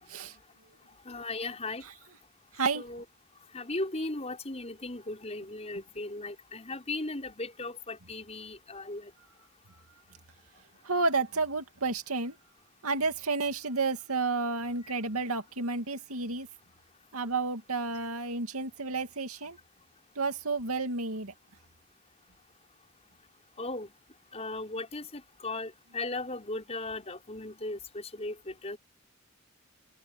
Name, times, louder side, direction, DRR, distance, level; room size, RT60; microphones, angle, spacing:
voice 1, 1.1-1.8 2.7-3.0 3.5-9.1 23.6-23.9 24.3-28.8, left 2 dB, 30° left, 5.4 m, -37 dB
voice 2, 10.9-12.3 12.8-16.5 17.1-19.6 20.2-21.3, right 3 dB, 85° right, 2.4 m, -31 dB
open air
head